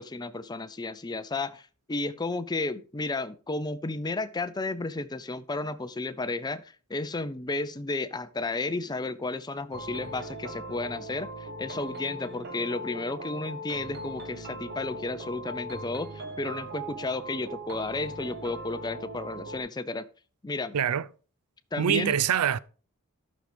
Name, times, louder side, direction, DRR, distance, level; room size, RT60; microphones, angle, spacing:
voice 1, 0.0-6.6 6.9-20.1 20.4-20.8 21.7-22.1, left 3 dB, 20° left, 0.5 m, -33 dB
sound 1, 9.7-19.6, right 1 dB, 45° right, 1.0 m, -39 dB
voice 2, 20.7-21.1 21.8-22.6, right 8 dB, 80° right, 0.4 m, -24 dB
12.0 x 6.3 x 3.4 m
head